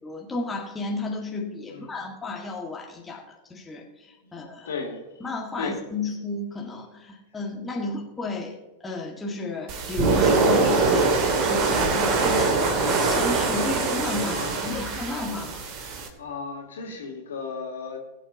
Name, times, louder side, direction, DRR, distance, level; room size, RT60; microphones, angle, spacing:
voice 1, 0.0-4.7 5.2-8.6 8.8-15.6, left 3 dB, 15° left, -1 dB, 1.8 m, -33 dB
voice 2, 4.2-5.3 5.5-5.8 7.8-7.9 14.3-14.7 16.2-18.0, left 4 dB, 65° left, 1 dB, 2.9 m, -35 dB
sound 1, 9.7-16.1, right 3 dB, 40° right, 2.1 m, -23 dB
21.0 x 9.1 x 2.9 m, 1.1 s
figure-of-eight pair, 90°, 0 cm